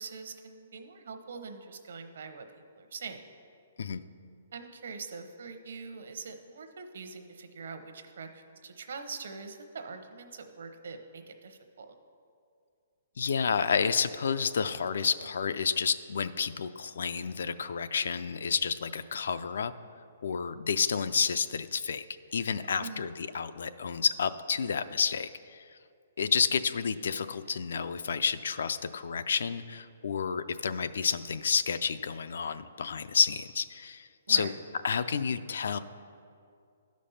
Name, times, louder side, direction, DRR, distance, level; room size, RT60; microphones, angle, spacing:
voice 1, 0.0-2.5 2.8-3.2 4.5-11.9 22.8-23.1 34.3-34.5, right 5 dB, 60° right, 6 dB, 0.8 m, -43 dB
voice 2, 13.2-19.7 20.2-22.1 22.3-25.6 26.2-34.5 34.8-35.8, left 6 dB, 65° left, 13 dB, 0.4 m, -30 dB
12.0 x 5.2 x 5.7 m, 2.4 s
hypercardioid pair, 180°, 0 cm